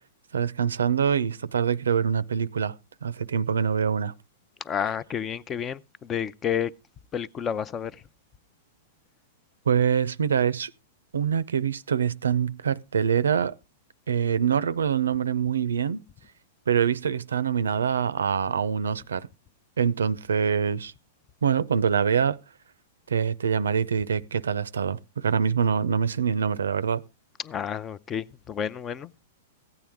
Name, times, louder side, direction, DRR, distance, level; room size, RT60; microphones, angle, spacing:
voice 1, 0.3-2.7 3.0-4.1 9.7-10.7 11.1-13.5 14.1-16.0 16.7-19.3 19.8-20.9 21.4-22.4 23.1-27.0, right 7 dB, 90° right, 0.5 m, -25 dB
voice 2, 4.6-6.7 7.1-7.9 27.4-29.2, left 8 dB, 25° left, 0.5 m, -30 dB
15.0 x 9.0 x 3.5 m
hypercardioid pair, 125°, 0 cm